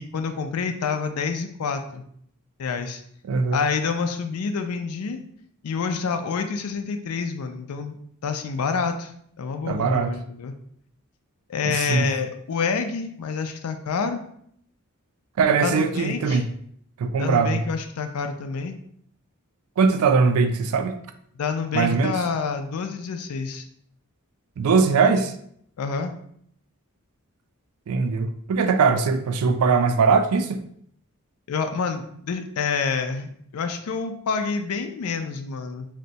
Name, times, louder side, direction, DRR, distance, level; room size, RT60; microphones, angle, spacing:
voice 1, 0.0-2.0 2.6-3.0 3.5-5.2 5.6-8.0 8.2-9.1 9.4-10.5 11.5-14.2 15.6-16.4 17.2-18.8 21.4-23.6 25.8-26.1 31.5-35.9, left 5 dB, 75° left, 7 dB, 0.4 m, -28 dB
voice 2, 3.2-3.6 9.7-10.1 11.6-12.1 15.4-16.5 17.0-17.6 19.8-21.0 21.7-22.2 24.6-25.3 27.9-30.6, right 5 dB, 70° right, 8 dB, 0.3 m, -21 dB
2.6 x 2.1 x 3.9 m, 0.67 s
head